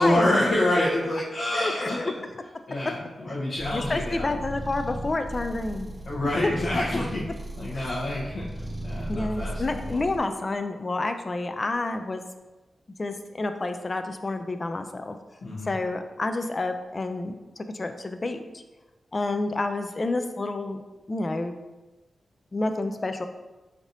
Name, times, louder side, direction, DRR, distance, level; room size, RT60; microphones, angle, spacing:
voice 1, 0.0-2.0 2.7-4.3 6.0-7.2 7.6-8.5 8.8-10.0 15.4-15.7, left 1 dB, 70° left, -8 dB, 0.8 m, -27 dB
voice 2, 1.5-2.1 3.7-5.9 6.4-6.5 7.7-7.9 9.1-12.2 13.0-15.2 15.6-18.6 19.1-20.8 21.1-21.5 22.5-23.3, left 2 dB, 35° left, 7 dB, 0.3 m, -29 dB
sound 1, 3.6-10.2, right 1 dB, 15° right, 0.6 m, -36 dB
3.3 x 2.6 x 3.9 m, 1.1 s
cardioid pair, 80°, 0 cm